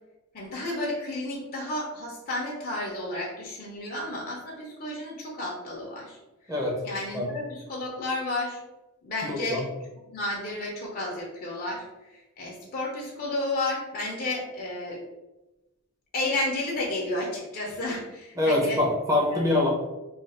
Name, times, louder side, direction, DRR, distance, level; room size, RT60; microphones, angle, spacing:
voice 1, 0.3-6.2 6.5-6.6 6.8-8.6 9.0-9.6 10.1-15.0 16.1-18.8 19.2-19.6, left 2 dB, 40° left, -3 dB, 0.6 m, -32 dB
voice 2, 9.2-9.6 18.4-19.7, left 1 dB, 15° right, -2 dB, 0.7 m, -24 dB
2.4 x 2.4 x 4.1 m, 1.0 s
head